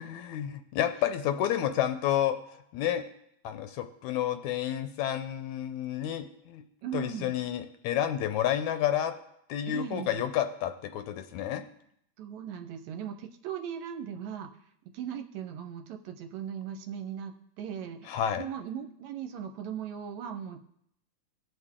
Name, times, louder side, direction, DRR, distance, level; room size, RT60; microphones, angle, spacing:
voice 1, 0.0-2.4 2.7-3.0 3.4-6.6 6.9-9.1 9.5-11.6 18.1-18.4, left 11 dB, 80° left, 8 dB, 1.9 m, -30 dB
voice 2, 6.8-7.4 9.7-10.2 12.2-14.5 14.9-20.6, right 8 dB, 75° right, 7 dB, 1.8 m, -38 dB
19.5 x 6.6 x 3.7 m, 0.73 s
omnidirectional pair, 3.6 m